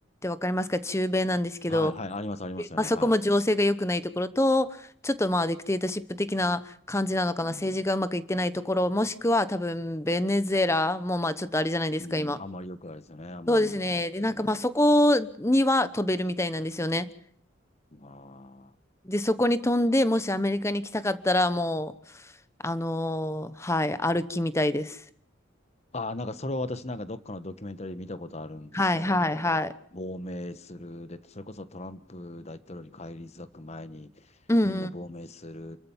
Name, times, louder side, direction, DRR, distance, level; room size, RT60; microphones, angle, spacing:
voice 1, 0.2-1.9 2.6-4.8 5.0-12.4 13.5-17.1 19.0-21.9 22.6-25.0 28.7-29.7 34.5-34.9, left 1 dB, 15° left, 14 dB, 1.0 m, -25 dB
voice 2, 1.7-3.1 7.4-7.8 12.0-14.7 17.9-18.7 25.9-29.6 29.9-34.1 34.6-35.8, left 2 dB, 35° left, 13 dB, 1.2 m, -38 dB
28.5 x 14.0 x 7.2 m, 0.62 s
head